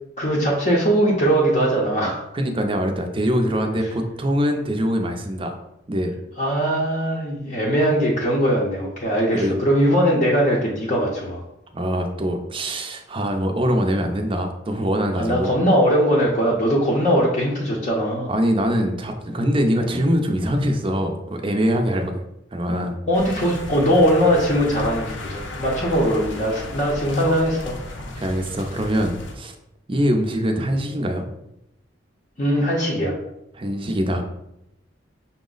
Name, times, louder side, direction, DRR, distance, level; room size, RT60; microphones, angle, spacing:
voice 1, 0.2-2.3 6.4-11.4 15.1-18.3 23.1-27.8 32.4-33.2, equal, 40° left, -3 dB, 0.6 m, -20 dB
voice 2, 2.3-5.6 5.9-6.1 9.3-9.5 11.7-15.5 18.3-22.2 22.5-23.0 28.2-29.5 29.9-31.2 33.6-34.2, equal, 30° right, 4 dB, 0.5 m, -23 dB
sound 1, 23.1-29.4, left 2 dB, 80° left, 0.6 m, -35 dB
5.7 x 2.0 x 3.8 m, 0.83 s
head